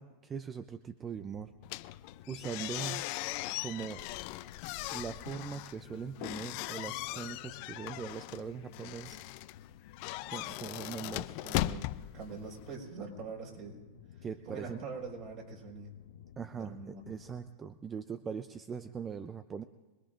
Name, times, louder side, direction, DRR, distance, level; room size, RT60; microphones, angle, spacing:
voice 1, 0.0-1.5 2.3-3.0 3.6-4.1 4.9-9.2 10.3-11.3 14.2-14.8 16.4-19.6, right 6 dB, 25° right, 11 dB, 0.5 m, -41 dB
sound 1, 1.1-17.5, left 9 dB, 75° left, 0.8 m, -56 dB
sound 2, 1.6-12.8, left 18 dB, 55° left, 0.4 m, -39 dB
voice 2, 11.4-13.8 14.2-15.9 16.5-17.0, right 4 dB, 55° right, -1 dB, 5.0 m, -44 dB
25.0 x 20.5 x 2.6 m, 1.2 s
hypercardioid pair, 110°, 0 cm